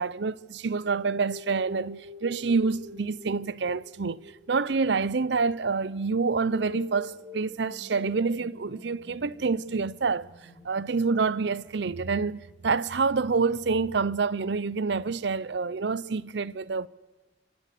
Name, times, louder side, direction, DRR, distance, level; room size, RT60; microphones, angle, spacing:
voice 1, 0.0-4.2 4.5-10.3 10.6-16.9, right 4 dB, 70° right, 0.6 m, -27 dB
sound 1, 0.8-14.0, equal, 40° right, 6.8 m, -47 dB
28.0 x 16.0 x 6.6 m
head